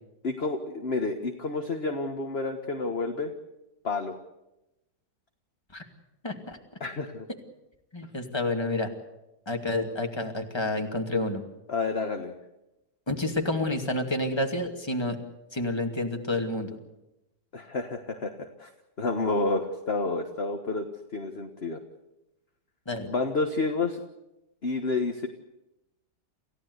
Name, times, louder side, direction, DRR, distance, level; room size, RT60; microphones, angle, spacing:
voice 1, 0.2-3.3 3.8-4.1 6.8-7.3 11.7-12.3 17.5-18.7 19.0-20.9 21.1-21.8 23.1-24.0 24.6-25.3, left 3 dB, 35° left, 5 dB, 1.6 m, -29 dB
voice 2, 6.2-6.6 7.9-8.9 9.5-11.4 13.1-15.2 15.5-16.8 22.9-23.1, left 2 dB, 15° left, 3 dB, 2.4 m, -29 dB
28.5 x 15.5 x 8.1 m, 0.94 s
omnidirectional pair, 1.8 m